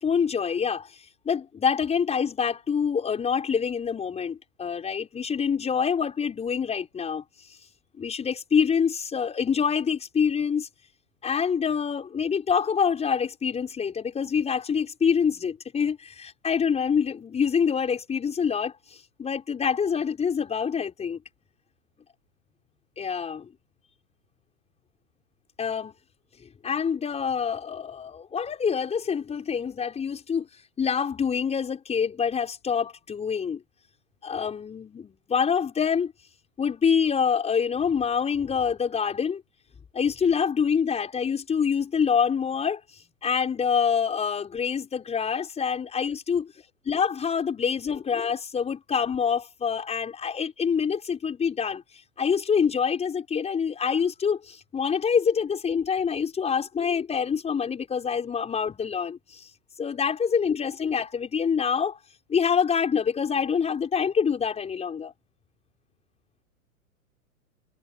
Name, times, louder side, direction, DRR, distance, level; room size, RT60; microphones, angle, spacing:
voice 1, 0.0-7.6 8.0-10.7 11.2-21.2 23.0-23.5 25.6-25.9 26.6-30.5 30.8-33.6 34.2-36.1 36.6-39.4 39.9-46.5 46.8-51.8 52.2-59.5 59.8-62.0 62.3-65.1, left 6 dB, 15° left, 6.5 m, -26 dB
figure-of-eight pair, 110°, 43 cm